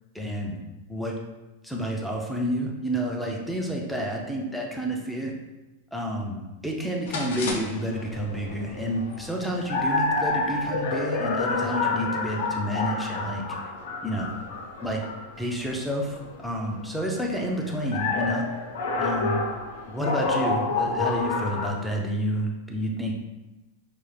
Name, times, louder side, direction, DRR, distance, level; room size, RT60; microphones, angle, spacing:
voice 1, 0.1-0.6 0.9-1.1 1.6-5.3 5.9-13.4 14.0-14.3 14.8-15.0 15.4-18.4 18.9-19.4 19.9-23.1, equal, ahead, 0 dB, 0.4 m, -29 dB
sound 1, 7.1-21.7, left 3 dB, 60° left, 0.6 m, -29 dB
4.7 x 2.4 x 3.2 m, 1.1 s
supercardioid pair, 170°, 0 cm